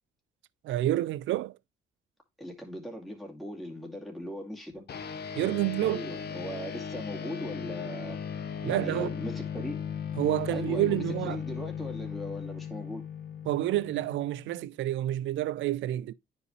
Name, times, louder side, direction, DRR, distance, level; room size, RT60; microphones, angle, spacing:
voice 1, 0.6-1.6 5.4-6.1 8.6-9.1 10.2-11.4 13.5-16.1, right 14 dB, 75° right, 0.4 m, -29 dB
voice 2, 2.4-4.8 5.8-8.2 8.7-9.8 10.5-13.0, equal, ahead, 2.5 m, -39 dB
sound 1, 4.9-14.6, left 7 dB, 55° left, 1.4 m, -37 dB
9.5 x 5.3 x 3.1 m
cardioid pair, 90°, 20 cm